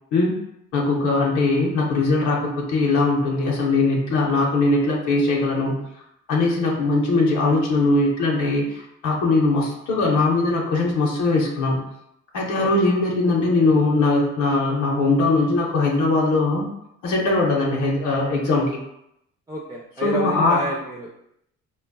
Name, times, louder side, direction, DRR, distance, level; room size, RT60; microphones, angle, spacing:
voice 1, 0.7-5.7 6.3-11.8 12.3-16.7 17.0-18.8 20.0-20.6, left 3 dB, 80° left, -2 dB, 0.7 m, -20 dB
voice 2, 19.5-21.1, right 1 dB, 10° right, -3 dB, 0.4 m, -29 dB
3.7 x 2.2 x 2.2 m, 0.80 s
cardioid pair, 90°, 30 cm